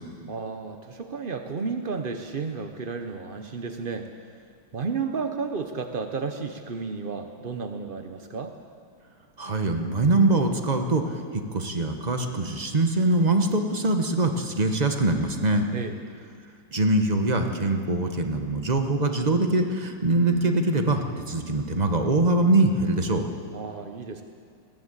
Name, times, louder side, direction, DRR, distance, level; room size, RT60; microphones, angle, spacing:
voice 1, 0.3-4.1 4.7-8.6 15.7-15.9 23.5-24.2, right 5 dB, 55° right, 5 dB, 0.5 m, -32 dB
voice 2, 9.4-11.0 11.3-15.7 16.7-23.3, right 2 dB, 25° right, 5 dB, 1.1 m, -23 dB
20.0 x 16.0 x 8.3 m, 2.2 s
omnidirectional pair, 2.3 m